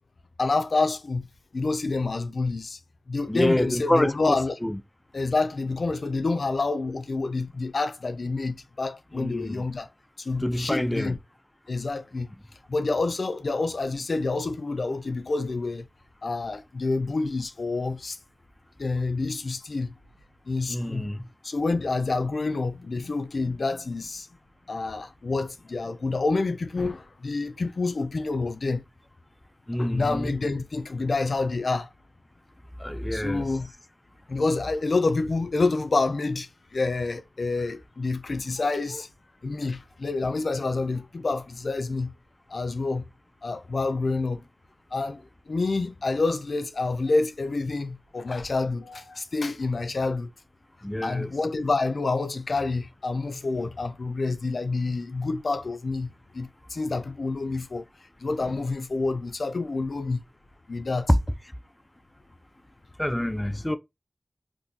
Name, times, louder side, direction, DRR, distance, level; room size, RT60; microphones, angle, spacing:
voice 1, 0.4-1.3 1.5-2.8 3.1-4.6 5.1-9.9 10.2-11.2 11.7-12.3 12.7-15.9 16.2-18.2 18.8-19.9 20.5-21.1 21.4-24.3 24.7-28.8 29.8-31.9 33.1-33.7 34.3-39.1 39.4-42.1 42.5-43.1 43.4-44.4 44.9-50.3 51.0-57.8 58.2-60.2 60.7-61.1, left 3 dB, 90° left, 0.4 m, -28 dB
voice 2, 3.3-4.8 9.1-9.6 10.4-11.2 20.7-21.2 29.7-30.3 32.8-33.5 38.6-39.0 50.8-51.3 61.1-61.2 63.0-63.8, left 1 dB, 15° left, 0.4 m, -26 dB
3.7 x 2.6 x 2.6 m
wide cardioid pair, 45°, 0 cm